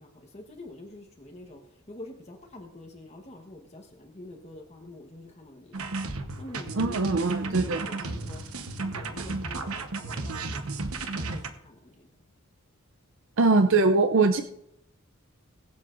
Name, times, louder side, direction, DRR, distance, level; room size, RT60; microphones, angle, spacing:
voice 1, 0.0-1.6 1.9-6.1 6.4-8.4 8.8-12.1, left 2 dB, 30° left, 1 dB, 1.2 m, -46 dB
sound 1, 5.7-11.5, right 3 dB, 80° right, 1.1 m, -33 dB
voice 2, 6.7-7.9 13.4-14.4, right 3 dB, 60° right, 8 dB, 0.5 m, -22 dB
22.5 x 7.6 x 2.6 m, 0.78 s
head